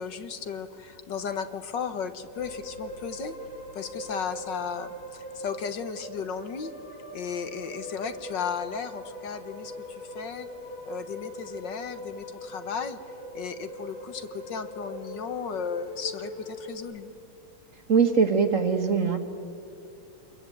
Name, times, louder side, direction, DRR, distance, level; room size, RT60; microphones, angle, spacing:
voice 1, 0.0-3.3 3.7-6.7 7.1-10.5 10.9-13.0 13.3-17.1, left 6 dB, 60° left, 10 dB, 1.8 m, -35 dB
sound 1, 2.3-16.8, left 1 dB, 85° left, 4.2 m, -41 dB
voice 2, 17.9-19.2, right 5 dB, 40° right, 7 dB, 1.7 m, -22 dB
27.0 x 22.0 x 9.2 m, 2.6 s
omnidirectional pair, 2.3 m